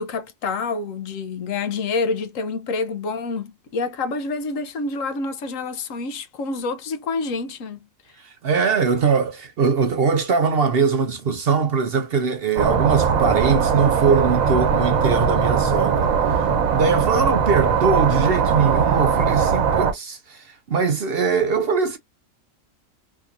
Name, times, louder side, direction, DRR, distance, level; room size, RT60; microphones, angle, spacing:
voice 1, 0.0-7.8, left 4 dB, 75° left, 1.1 m, -27 dB
voice 2, 8.4-16.1 16.7-22.0, right 5 dB, 55° right, 0.7 m, -21 dB
sound 1, 12.6-19.9, right 6 dB, 80° right, 1.2 m, -20 dB
3.5 x 2.8 x 2.5 m
omnidirectional pair, 1.4 m